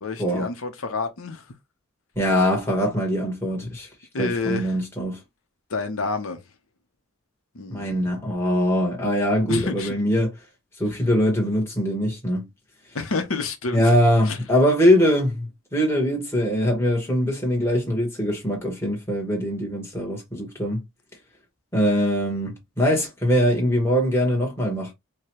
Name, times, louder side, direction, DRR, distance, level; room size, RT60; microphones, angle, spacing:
voice 1, 0.0-1.4 4.1-4.7 5.7-6.4 7.5-8.0 9.5-10.0 12.9-13.9 14.2-14.4, left 4 dB, 85° left, 0.8 m, -29 dB
voice 2, 2.2-3.9 4.2-5.2 7.7-10.3 10.8-12.5 13.7-20.8 21.7-24.9, equal, 10° left, 1.2 m, -22 dB
4.7 x 2.2 x 3.0 m
head